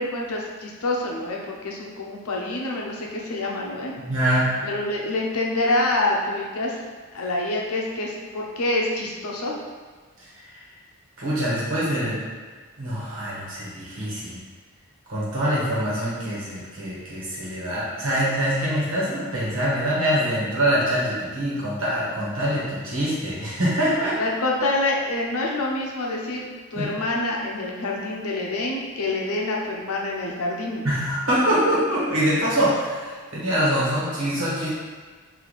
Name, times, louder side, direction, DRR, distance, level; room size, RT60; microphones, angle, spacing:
voice 1, 0.0-3.9 4.6-6.8 7.1-9.6 24.2-30.9, left 2 dB, 80° left, -1 dB, 0.7 m, -26 dB
voice 2, 4.0-4.6 10.3-10.6 11.2-12.2 12.8-14.4 15.1-24.1 26.7-26.9 30.8-34.7, equal, 70° right, -7 dB, 1.4 m, -24 dB
3.2 x 2.7 x 4.0 m, 1.5 s
head